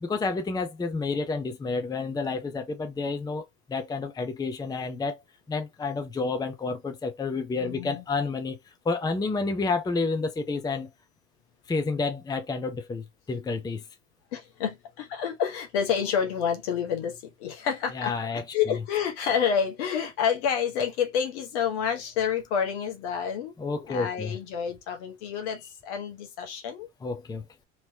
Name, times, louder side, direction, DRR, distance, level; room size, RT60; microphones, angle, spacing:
voice 1, 0.0-5.2 5.5-8.6 8.8-10.9 11.7-13.8 17.9-18.4 23.6-24.4 27.0-27.4, left 4 dB, 10° left, 0.6 m, -30 dB
voice 2, 7.6-8.0 14.3-18.1 18.5-26.9, left 7 dB, 65° left, 1.0 m, -29 dB
3.0 x 2.9 x 2.7 m
figure-of-eight pair, 70°, 37 cm